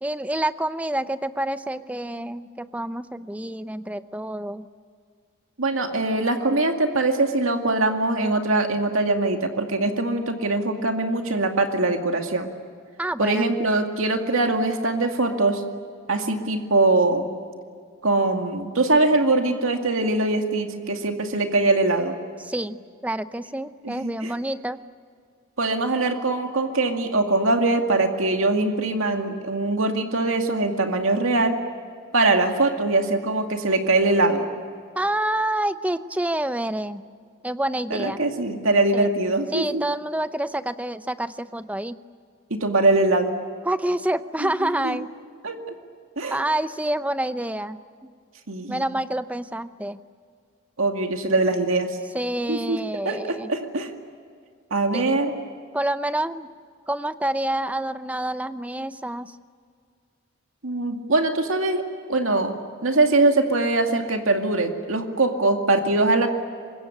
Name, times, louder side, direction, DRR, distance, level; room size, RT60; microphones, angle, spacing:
voice 1, 0.0-4.7 13.0-13.5 22.4-24.8 34.9-37.0 37.4-38.2 38.9-39.1 39.5-42.0 43.6-45.1 46.3-48.1 48.7-50.0 52.1-53.5 54.9-55.0 55.7-56.5 56.9-59.4, right 1 dB, 5° right, 12 dB, 0.7 m, -27 dB
voice 2, 5.6-12.5 13.2-15.6 16.1-17.3 18.0-22.2 23.8-24.3 25.6-31.6 32.1-34.5 37.9-39.8 42.5-43.3 44.4-45.0 45.4-45.8 46.2-46.4 48.5-48.8 50.8-52.0 52.5-52.8 53.0-53.9 54.7-55.3 60.6-61.8 62.1-62.5 62.8-66.3, right 2 dB, 90° right, 4 dB, 2.3 m, -22 dB
24.5 x 22.0 x 10.0 m, 2.2 s
head